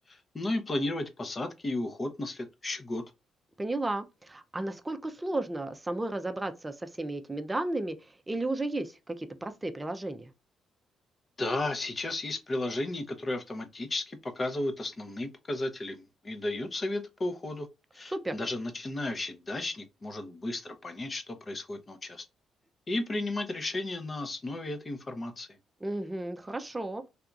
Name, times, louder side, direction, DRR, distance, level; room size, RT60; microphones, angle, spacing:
voice 1, 0.1-3.0 11.4-17.7 17.9-22.2 22.9-25.5, left 2 dB, 30° left, 0.7 m, -34 dB
voice 2, 3.6-8.0 8.3-10.3 18.1-18.4 25.8-27.1, right 2 dB, 15° right, 0.5 m, -33 dB
3.4 x 2.8 x 2.4 m
cardioid pair, 90°, 0 cm